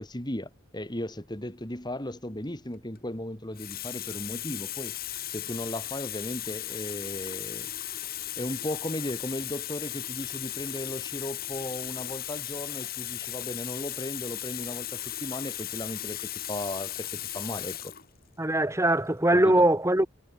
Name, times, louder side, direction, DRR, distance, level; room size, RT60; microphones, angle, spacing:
voice 1, 0.0-5.0 5.3-7.7 8.4-17.9 19.3-19.6, left 1 dB, 20° left, 2.4 m, -36 dB
Water tap faucet, 2.7-3.0 3.6-18.1 18.9-19.1, left 13 dB, 45° left, 2.0 m, -36 dB
voice 2, 18.4-20.1, right 1 dB, 15° right, 1.8 m, -22 dB
head